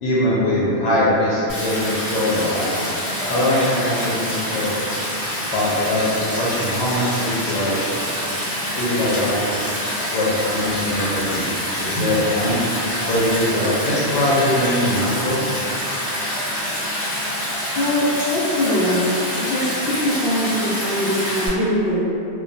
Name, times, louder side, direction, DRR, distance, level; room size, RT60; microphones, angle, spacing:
voice 1, 0.0-2.7 3.3-4.9 5.5-7.7 8.8-9.7 10.1-12.5 13.1-15.5, left 1 dB, 85° left, -8 dB, 0.9 m, -21 dB
Stream, 1.5-21.5, equal, 20° left, 1.0 m, -26 dB
voice 2, 18.3-19.2 19.5-19.7 20.0-22.0, left 1 dB, 60° left, -8 dB, 0.8 m, -21 dB
2.2 x 2.2 x 2.5 m, 2.7 s
omnidirectional pair, 1.2 m